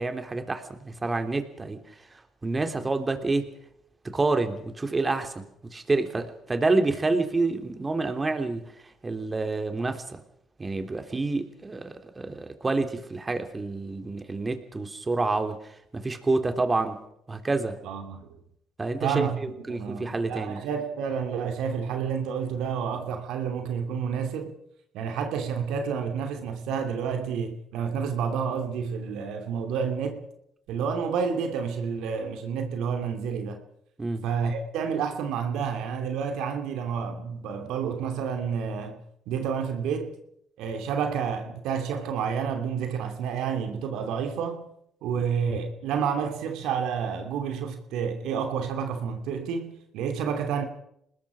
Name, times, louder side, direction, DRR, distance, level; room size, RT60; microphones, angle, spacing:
voice 1, 0.0-1.8 2.4-3.5 4.0-8.7 9.0-10.2 10.6-15.6 15.9-17.0 17.3-17.8 18.8-20.6 34.0-34.2, right 3 dB, 25° right, 3.3 m, -28 dB
voice 2, 17.8-18.4 19.0-24.5 24.9-30.3 30.7-33.6 34.2-39.0 39.3-40.1 40.6-44.6 45.0-50.7, right 6 dB, 75° right, 2.7 m, -29 dB
27.5 x 20.0 x 5.0 m
hypercardioid pair, 60°, 0 cm